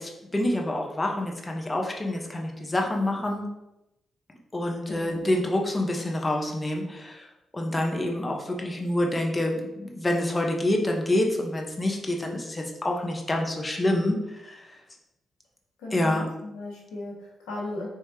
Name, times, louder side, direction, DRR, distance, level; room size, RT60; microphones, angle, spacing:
voice 1, 0.0-3.5 4.5-14.8 15.9-16.3, left 1 dB, 25° left, 1 dB, 1.0 m, -27 dB
voice 2, 4.9-5.4 15.8-17.9, left 2 dB, 85° left, -3 dB, 1.1 m, -37 dB
4.8 x 3.1 x 2.9 m, 0.89 s
hypercardioid pair, 40°, 0 cm